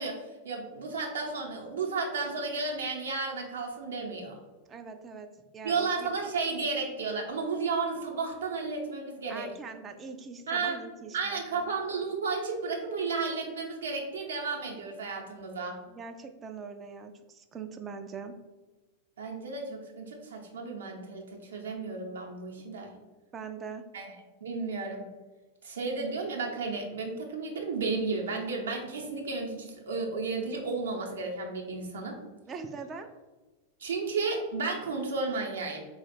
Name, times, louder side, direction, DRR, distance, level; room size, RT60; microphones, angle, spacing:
voice 1, 0.0-4.4 5.6-9.5 10.5-10.8 11.1-15.8 19.2-22.9 23.9-24.1 24.4-25.1 25.6-32.2 33.8-35.9, right 4 dB, 65° right, 0 dB, 0.7 m, -33 dB
voice 2, 4.7-6.1 9.3-11.8 15.9-18.4 23.3-23.8 32.5-33.1, right 5 dB, 25° right, 7 dB, 0.3 m, -42 dB
4.1 x 2.3 x 3.2 m, 1.2 s
figure-of-eight pair, 90°, 0 cm